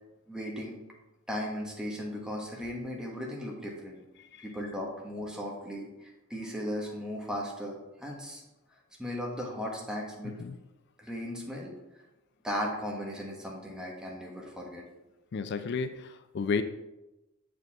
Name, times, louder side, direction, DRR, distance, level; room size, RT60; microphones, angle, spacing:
voice 1, 0.3-0.8 1.3-4.0 4.4-8.4 9.0-10.3 11.0-11.7 12.4-14.8, equal, 5° right, -2 dB, 1.3 m, -36 dB
voice 2, 10.2-10.6 15.3-16.6, left 5 dB, 55° left, 10 dB, 0.4 m, -32 dB
7.8 x 5.1 x 3.5 m, 0.98 s
head